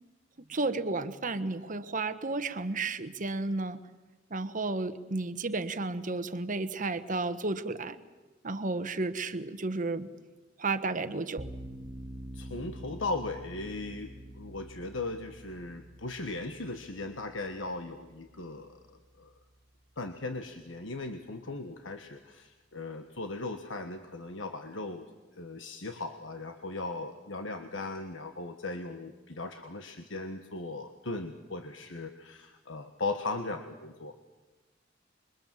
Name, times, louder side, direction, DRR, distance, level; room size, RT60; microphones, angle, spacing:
voice 1, 0.5-3.8 4.3-8.0 8.4-10.1 10.6-11.5, right 3 dB, 45° right, 11 dB, 1.2 m, -32 dB
sound 1, 11.4-20.2, equal, 20° right, 1.7 m, -47 dB
voice 2, 12.3-19.3 20.0-25.0 25.3-34.1, left 2 dB, 75° left, 6 dB, 1.4 m, -38 dB
27.0 x 23.0 x 7.5 m, 1.2 s
head